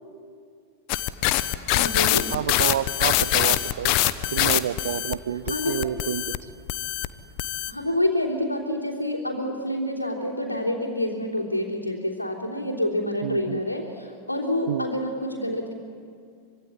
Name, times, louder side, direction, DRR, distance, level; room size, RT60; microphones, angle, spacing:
sound 1, 0.9-5.1 5.5-6.4 6.7-7.1 7.4-7.7, left 16 dB, 45° left, 1.0 m, -23 dB
voice 1, 1.7-2.3 5.5-5.8 7.7-15.7, left 1 dB, 85° left, -5 dB, 3.4 m, -27 dB
voice 2, 2.3-3.9 4.3-6.3 13.2-13.6 14.7-14.9, right 10 dB, 60° right, 17 dB, 0.8 m, -29 dB
25.0 x 23.5 x 9.7 m, 2.3 s
figure-of-eight pair, 90°, 0 cm